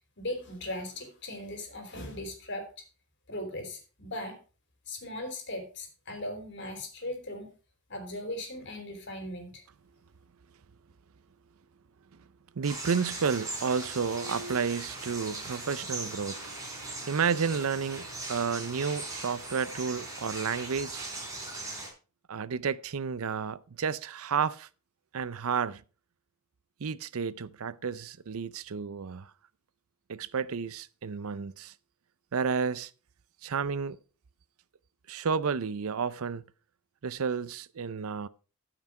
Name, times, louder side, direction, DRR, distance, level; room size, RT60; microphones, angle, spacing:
voice 1, 0.2-2.6 3.3-4.4 4.9-7.5 7.9-9.6, left 1 dB, 50° left, 3.3 m, -38 dB
sound 1, 12.6-21.9, right 2 dB, 15° right, 4.3 m, -39 dB
voice 2, 12.6-21.1 22.3-24.7 25.1-25.8 26.8-29.3 30.1-31.7 32.3-32.9 33.4-34.0 35.1-36.4 37.0-38.3, right 6 dB, 70° right, 0.5 m, -31 dB
13.5 x 6.0 x 4.8 m
head